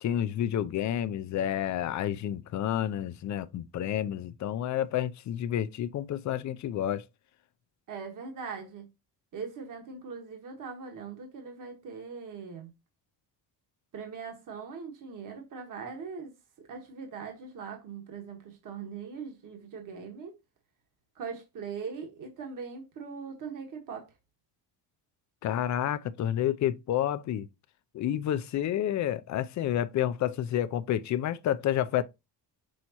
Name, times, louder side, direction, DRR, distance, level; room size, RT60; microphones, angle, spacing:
voice 1, 0.0-7.0 25.4-27.5 27.9-32.0, left 11 dB, 45° left, 0.4 m, -29 dB
voice 2, 7.9-8.9 9.3-12.7 13.9-16.3 16.6-20.4 21.1-24.1, right 5 dB, 45° right, 1.5 m, -41 dB
6.2 x 5.3 x 2.9 m
cardioid pair, 175°, 43 cm